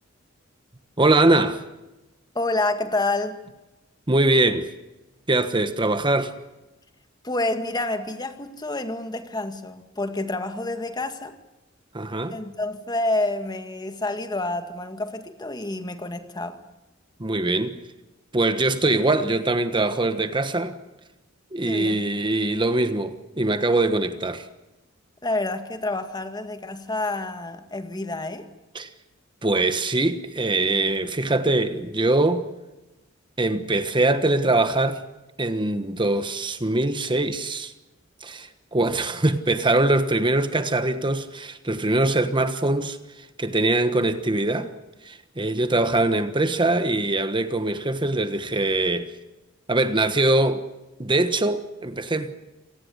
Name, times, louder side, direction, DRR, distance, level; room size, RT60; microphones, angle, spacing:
voice 1, 1.0-1.6 4.1-4.7 5.3-6.3 11.9-12.4 17.2-17.8 18.3-20.8 21.5-24.5 28.7-28.9 29.4-32.5 33.4-35.0 35.4-37.7 38.2-43.0 43.4-44.7 45.0-49.1 49.7-50.6 51.0-52.3, right 2 dB, 25° right, 1.3 m, -22 dB
voice 2, 2.3-3.4 7.2-11.3 12.3-16.6 21.6-22.1 25.2-28.5, left 2 dB, 20° left, 2.0 m, -28 dB
27.5 x 18.5 x 8.2 m
head